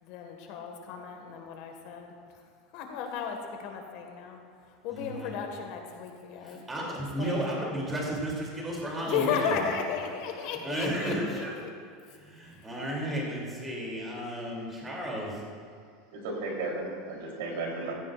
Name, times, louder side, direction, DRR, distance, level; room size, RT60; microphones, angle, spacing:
voice 1, 0.0-2.1 2.7-4.4 4.8-6.6 7.0-7.7 8.9-11.7, left 7 dB, 55° left, 3 dB, 1.7 m, -34 dB
voice 2, 5.0-5.3 6.4-9.6 10.6-11.5 12.2-15.4, right 1 dB, 15° right, -3 dB, 2.9 m, -33 dB
voice 3, 16.1-17.9, right 2 dB, 85° right, -1 dB, 3.5 m, -34 dB
15.5 x 15.0 x 2.5 m, 2.2 s
supercardioid pair, 165°, 0 cm